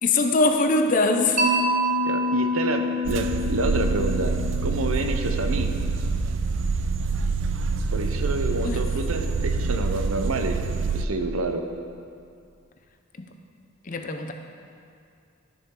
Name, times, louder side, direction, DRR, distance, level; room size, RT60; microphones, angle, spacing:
voice 1, 0.0-1.4 8.6-8.8 13.2-13.3 13.9-14.3, left 3 dB, 40° left, 5 dB, 0.6 m, -22 dB
Mallet percussion, 1.4-5.4, left 1 dB, 40° right, 1.1 m, -27 dB
voice 2, 2.0-4.3 4.6-5.7 7.9-10.5 10.9-11.6, right 2 dB, 85° right, 5 dB, 0.7 m, -28 dB
sound 1, 3.0-11.0, right 4 dB, 60° right, 0.4 m, -26 dB
12.5 x 6.9 x 3.7 m, 2.4 s
head